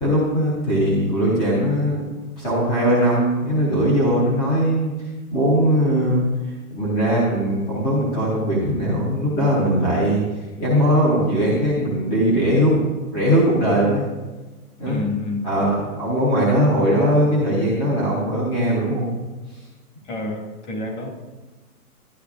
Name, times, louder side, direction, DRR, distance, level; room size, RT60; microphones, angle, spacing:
voice 1, 0.0-2.1 2.4-4.9 5.3-10.2 10.6-12.8 13.1-14.0 14.8-15.0 15.4-19.2, equal, 5° left, -6 dB, 0.6 m, -20 dB
voice 2, 14.9-15.8 20.1-21.1, left 2 dB, 50° left, 0 dB, 2.0 m, -29 dB
11.5 x 10.0 x 2.4 m, 1.2 s
hypercardioid pair, 160°, 45 cm